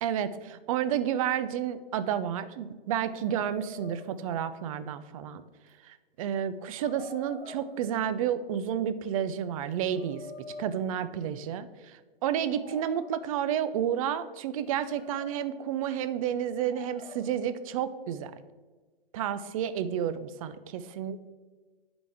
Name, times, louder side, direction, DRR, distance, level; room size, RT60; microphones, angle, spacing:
voice 1, 0.0-5.4 5.9-10.2 10.6-18.3 19.1-21.3, right 9 dB, 35° right, 12 dB, 0.5 m, -31 dB
sound 1, 3.1-4.8 5.7-5.8 6.8-8.3 9.3-11.6 12.5-13.7 14.4-15.8 16.6-17.6, left 3 dB, 30° left, 1.3 m, -48 dB
10.5 x 4.1 x 3.5 m, 1.3 s
figure-of-eight pair, 120°, 29 cm